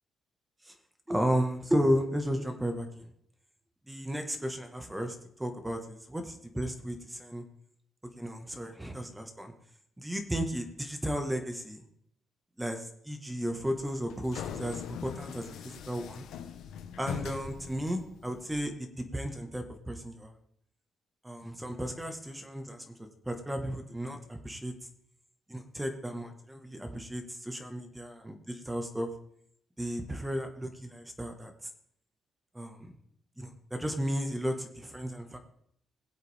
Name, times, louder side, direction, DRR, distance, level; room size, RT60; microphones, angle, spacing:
voice 1, 1.1-3.1 3.9-7.4 8.2-9.5 10.0-11.8 12.6-16.2 17.0-18.9 19.1-20.3 21.2-22.9 23.2-24.7 25.5-29.1 29.8-31.5 32.5-32.9 33.4-35.4, equal, 10° right, 5 dB, 1.8 m, -34 dB
sound 1, 13.6-18.6, left 8 dB, 85° left, 1.1 m, -41 dB
20.5 x 8.0 x 3.7 m, 0.69 s
cardioid pair, 90°, 0 cm